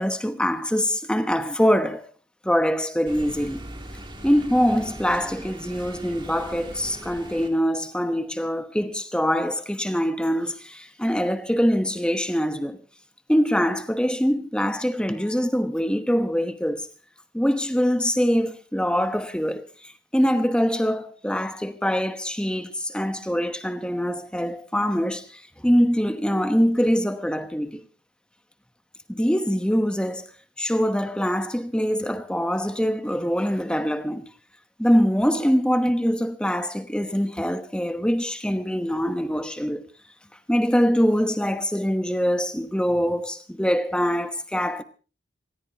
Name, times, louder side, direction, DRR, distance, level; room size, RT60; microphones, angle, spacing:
voice 1, 0.0-2.1 2.4-3.6 4.2-12.8 13.3-16.9 17.3-27.8 29.1-30.3 30.6-34.2 34.8-39.8 40.5-44.8, equal, 5° left, 1.1 m, -24 dB
sound 1, 3.1-7.5, right 1 dB, 25° right, 2.6 m, -40 dB
27.0 x 15.5 x 2.9 m
head